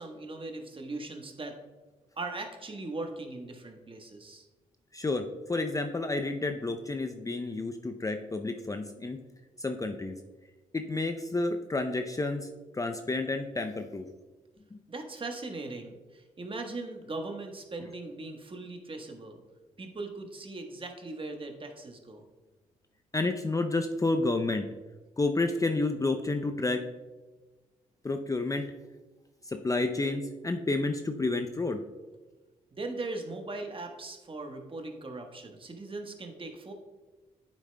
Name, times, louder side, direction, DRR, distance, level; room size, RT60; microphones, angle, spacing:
voice 1, 0.0-1.6 2.2-4.4 14.9-19.4 19.8-22.2 32.7-36.7, right 2 dB, 30° right, 4 dB, 1.3 m, -39 dB
voice 2, 4.9-9.2 9.6-10.2 10.7-12.5 12.7-14.1 14.7-14.8 23.1-24.7 25.2-26.8 28.0-28.7 29.4-31.8, left 2 dB, 20° left, 6 dB, 0.5 m, -30 dB
9.1 x 7.3 x 2.2 m, 1.2 s
hypercardioid pair, 45°, 17 cm